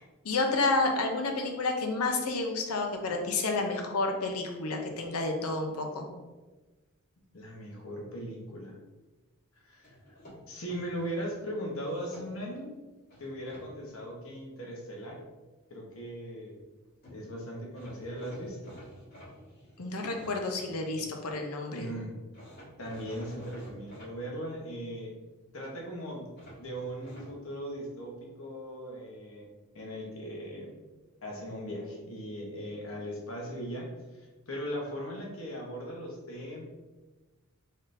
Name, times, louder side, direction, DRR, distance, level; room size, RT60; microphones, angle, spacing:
voice 1, 0.2-6.1 19.8-21.9, left 3 dB, 90° left, 3 dB, 0.7 m, -30 dB
voice 2, 7.3-8.8 9.6-9.9 10.5-12.7 13.2-15.2 15.7-16.6 17.1-18.8 21.7-22.2 22.8-25.1 25.5-26.3 26.6-29.5 29.7-30.7 31.2-36.6, equal, 65° left, -1 dB, 1.0 m, -39 dB
sound 1, 9.8-11.3 11.8-12.6 13.1-13.6 16.7-16.8 17.0-17.2 17.7-21.2 22.3-24.1 26.4-27.3, equal, 45° left, 1.3 m, -51 dB
4.0 x 3.6 x 2.6 m, 1.2 s
head